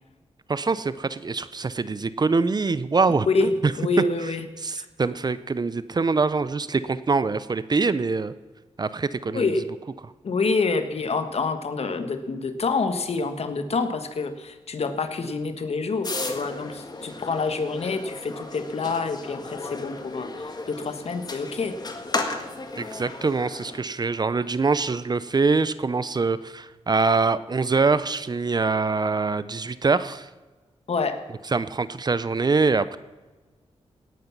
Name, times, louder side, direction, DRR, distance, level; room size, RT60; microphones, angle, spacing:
voice 1, 0.5-3.7 4.6-8.3 8.8-9.5 22.8-30.3 31.5-33.0, right 4 dB, 35° right, 15 dB, 0.6 m, -24 dB
voice 2, 3.3-4.4 4.8-4.9 9.3-9.7 10.2-21.8 30.9-31.3, left 4 dB, 60° left, 9 dB, 1.4 m, -27 dB
sound 1, 16.0-23.8, left 3 dB, 35° left, 1.7 m, -34 dB
17.5 x 9.4 x 6.0 m, 1.2 s
cardioid pair, 75°, 12 cm